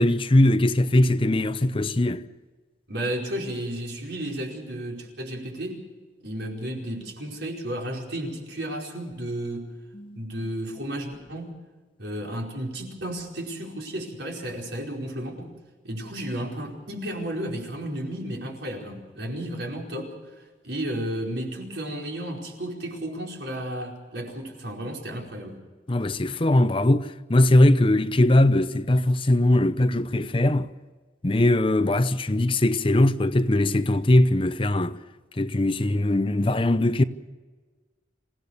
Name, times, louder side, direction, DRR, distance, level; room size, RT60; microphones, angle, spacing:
voice 1, 0.0-2.2 9.9-10.2 25.9-30.7 31.2-35.0 35.4-37.0, left 1 dB, 30° left, 0.7 m, -20 dB
voice 2, 2.9-5.8 6.2-9.7 10.1-11.5 12.0-15.5 15.8-20.1 20.6-25.6, right 1 dB, 75° right, 5.0 m, -33 dB
27.0 x 16.5 x 6.7 m
head